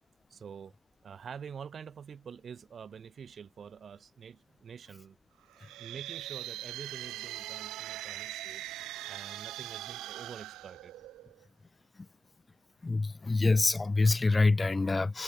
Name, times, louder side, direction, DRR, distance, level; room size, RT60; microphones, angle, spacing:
voice 1, 0.3-0.7 1.0-5.2 5.8-8.6 9.1-10.9, right 7 dB, 45° right, 7.2 m, -47 dB
sound 1, 5.5-11.4, right 15 dB, 90° right, 2.2 m, -41 dB
voice 2, 12.8-15.2, left 3 dB, 20° left, 1.0 m, -26 dB
cardioid pair, 110°, 0 cm